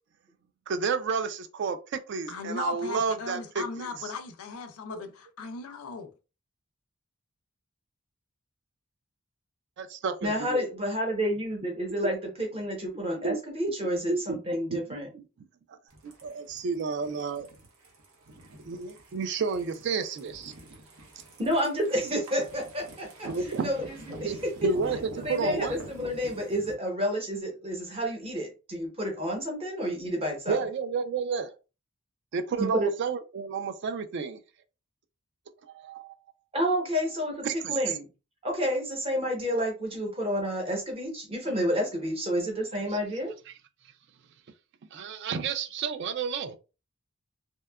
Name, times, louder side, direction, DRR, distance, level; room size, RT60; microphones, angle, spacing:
voice 1, 0.7-3.9 4.9-5.0 9.8-10.6 13.2-13.4 14.1-14.4 14.7-14.8 15.1-15.2 16.0-17.5 18.7-20.5 23.3-23.7 24.2-24.4 24.6-25.8 30.5-31.5 32.3-34.4 35.7-36.2 37.4-37.8 44.9-46.6, right 5 dB, 55° right, 0.3 m, -31 dB
voice 2, 2.3-6.1, left 5 dB, 85° left, 0.4 m, -38 dB
voice 3, 10.2-15.1 21.4-24.7 25.1-30.6 32.6-32.9 36.5-38.1 38.4-43.3, equal, 25° right, 0.8 m, -30 dB
sound 1, 15.9-26.7, right 1 dB, 85° right, 0.8 m, -46 dB
2.7 x 2.2 x 2.2 m
head